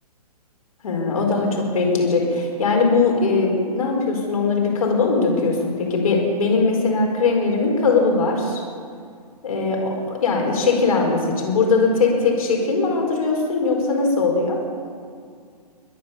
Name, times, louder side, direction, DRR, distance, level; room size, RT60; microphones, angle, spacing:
voice 1, 0.8-8.6 9.4-14.6, left 4 dB, 65° left, 0 dB, 4.7 m, -20 dB
21.0 x 9.2 x 6.8 m, 2.1 s
figure-of-eight pair, 125°, 20 cm